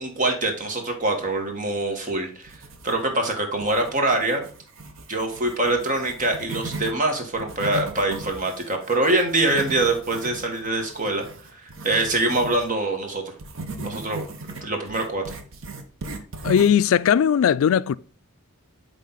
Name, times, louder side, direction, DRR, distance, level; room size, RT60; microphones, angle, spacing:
voice 1, 0.0-2.6 2.8-4.4 5.1-11.2 11.8-13.2 13.8-15.4, right 2 dB, 40° right, 1.3 m, -24 dB
sound 1, 2.4-3.2 3.6-6.9 7.3-12.7 13.4-16.9, right 2 dB, 65° right, 0.8 m, -37 dB
voice 2, 16.4-18.0, left 8 dB, 70° left, 0.3 m, -19 dB
8.4 x 3.3 x 3.9 m
head